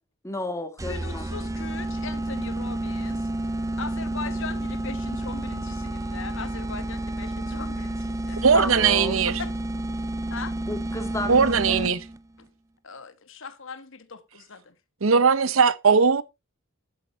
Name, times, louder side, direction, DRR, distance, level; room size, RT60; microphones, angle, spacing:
voice 1, 0.2-1.3 8.5-9.2 10.7-11.9, left 1 dB, 15° left, 2.0 m, -32 dB
sound 1, 0.8-12.2, right 1 dB, 15° right, 0.7 m, -30 dB
voice 2, 0.9-3.3 3.7-8.5 9.2-9.5 10.3-10.6 12.4-12.5 12.8-14.7, left 5 dB, 65° left, 1.4 m, -39 dB
voice 3, 8.4-9.3 11.3-12.0 15.0-16.2, right 5 dB, 70° right, 0.8 m, -19 dB
11.5 x 8.8 x 2.8 m
head